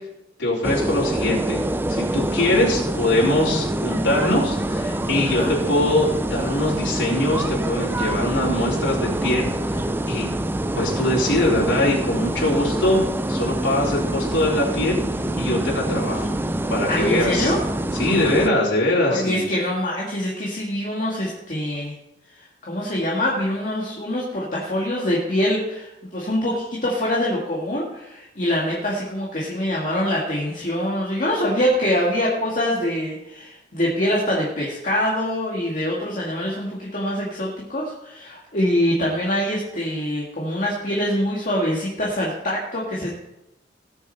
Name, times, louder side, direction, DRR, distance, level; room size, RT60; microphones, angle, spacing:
voice 1, 0.4-1.6 1.9-9.8 10.1-10.3 10.7-13.0 13.3-15.0 15.4-16.4 16.7-17.5 17.9-19.5, left 1 dB, 85° left, -6 dB, 4.0 m, -22 dB
sound 1, 0.6-18.5, right 1 dB, 10° right, 0.4 m, -25 dB
voice 2, 16.9-17.6 19.0-21.9 22.4-43.1, left 1 dB, 45° left, -4 dB, 2.0 m, -24 dB
19.0 x 6.7 x 4.2 m, 0.90 s
head